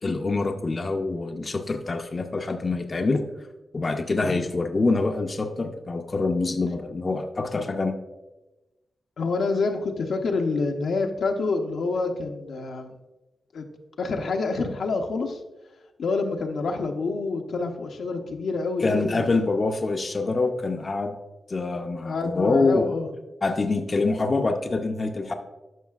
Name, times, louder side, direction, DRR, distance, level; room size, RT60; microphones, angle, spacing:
voice 1, 0.0-3.3 3.7-7.9 18.8-21.2 21.5-22.9 23.4-25.3, left 3 dB, 45° left, 5 dB, 0.6 m, -25 dB
voice 2, 9.2-12.9 13.5-13.7 14.0-15.4 16.0-19.4 22.0-23.1, left 3 dB, 75° left, 3 dB, 0.7 m, -27 dB
12.0 x 5.5 x 2.4 m, 1.1 s
cardioid pair, 55°, 0 cm